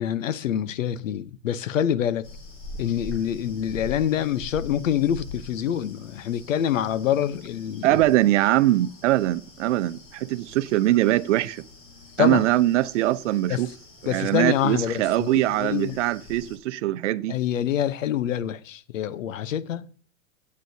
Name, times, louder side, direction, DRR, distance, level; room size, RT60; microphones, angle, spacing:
voice 1, 0.0-2.3 2.8-8.0 12.2-12.4 13.5-13.6 14.1-16.0 17.3-19.9, left 10 dB, 85° left, 0.9 m, -26 dB
sound 1, 2.2-16.6, left 3 dB, 40° left, 4.2 m, -44 dB
voice 2, 7.8-11.6 12.2-13.7 14.0-17.4, right 15 dB, 65° right, 0.9 m, -22 dB
16.5 x 8.6 x 2.8 m
hypercardioid pair, 125°, 38 cm